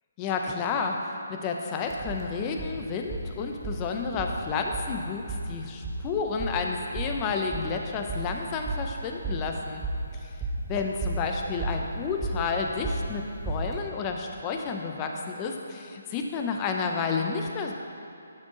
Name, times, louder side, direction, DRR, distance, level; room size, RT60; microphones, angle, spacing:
voice 1, 0.2-1.0 1.3-9.8 10.1-10.3 10.7-17.7, left 5 dB, 25° left, 3 dB, 0.7 m, -31 dB
sound 1, 1.9-13.8, right 2 dB, 10° right, 1.0 m, -35 dB
11.0 x 6.2 x 3.9 m, 2.6 s
figure-of-eight pair, 150°, 0 cm